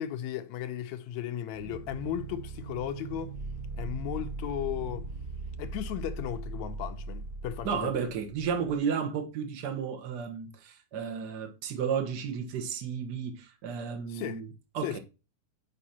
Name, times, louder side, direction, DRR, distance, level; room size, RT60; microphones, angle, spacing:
voice 1, 0.0-3.3 3.8-5.1 5.6-8.1 14.1-14.4 14.8-15.0, left 11 dB, 75° left, 1.9 m, -35 dB
sound 1, 1.5-8.8, right 3 dB, 30° right, 1.5 m, -39 dB
voice 2, 7.6-14.5 14.7-15.0, right 7 dB, 50° right, 1.2 m, -33 dB
9.0 x 5.1 x 2.8 m
omnidirectional pair, 3.5 m